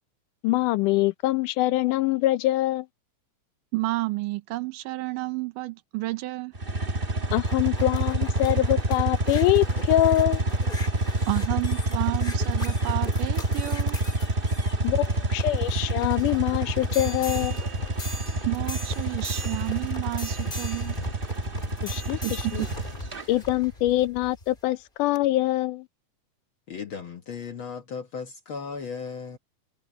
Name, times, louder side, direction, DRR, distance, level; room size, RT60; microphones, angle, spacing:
voice 1, 0.4-2.9 7.3-10.4 14.8-17.6 21.8-22.6 23.3-25.9, left 15 dB, 80° left, 2.2 m, -24 dB
voice 2, 3.7-6.5 11.3-14.0 18.5-21.0 22.2-22.7, right 20 dB, 85° right, 2.4 m, -31 dB
sound 1, 6.5-23.2, right 2 dB, 40° right, 0.7 m, -27 dB
sound 2, 6.9-24.6 25.2-25.3, left 1 dB, 15° left, 2.2 m, -40 dB
voice 3, 26.7-29.4, left 5 dB, 60° left, 1.4 m, -36 dB
omnidirectional pair, 3.7 m